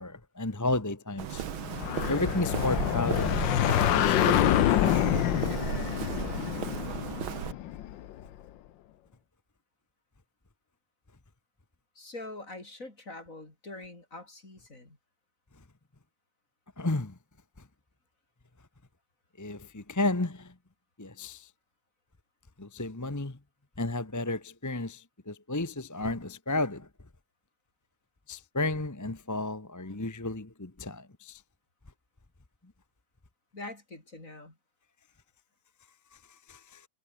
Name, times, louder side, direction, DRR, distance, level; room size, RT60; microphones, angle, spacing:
voice 1, 0.0-1.5 2.1-4.6 16.8-17.1 19.4-20.5 21.0-21.4 22.6-23.3 23.8-25.0 25.3-26.9 28.3-31.4 36.5-36.6, left 2 dB, 15° left, 0.7 m, -32 dB
Walk footsteps, 1.2-7.5, right 9 dB, 80° right, 2.2 m, -35 dB
sound 1, 1.6-8.2, left 12 dB, 70° left, 1.5 m, -27 dB
voice 2, 12.0-15.0 33.5-34.6, left 2 dB, 40° left, 5.8 m, -44 dB
omnidirectional pair, 2.2 m